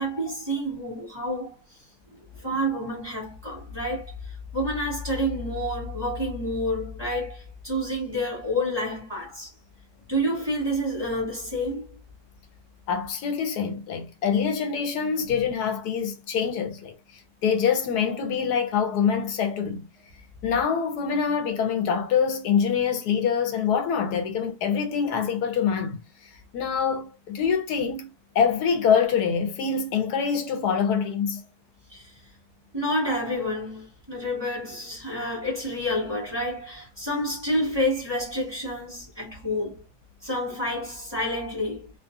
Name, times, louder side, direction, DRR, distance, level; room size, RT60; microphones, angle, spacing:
voice 1, 0.0-1.5 2.4-9.5 10.1-11.9 31.9-32.1 32.7-39.8 40.2-41.9, equal, 20° right, 1.2 m, -29 dB
voice 2, 12.9-16.9 17.4-19.9 20.4-26.0 26.5-28.1 28.3-31.4, left 7 dB, 85° left, 1.2 m, -25 dB
2.7 x 2.4 x 2.5 m
omnidirectional pair, 1.7 m